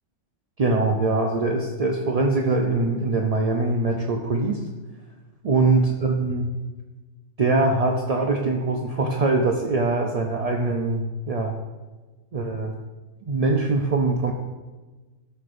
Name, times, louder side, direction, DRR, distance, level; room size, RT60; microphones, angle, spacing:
voice 1, 0.6-4.6 5.4-6.5 7.4-11.5 12.3-12.8 13.3-14.3, right 3 dB, 45° right, 1 dB, 0.5 m, -22 dB
13.0 x 6.6 x 2.6 m, 1.2 s
omnidirectional pair, 1.4 m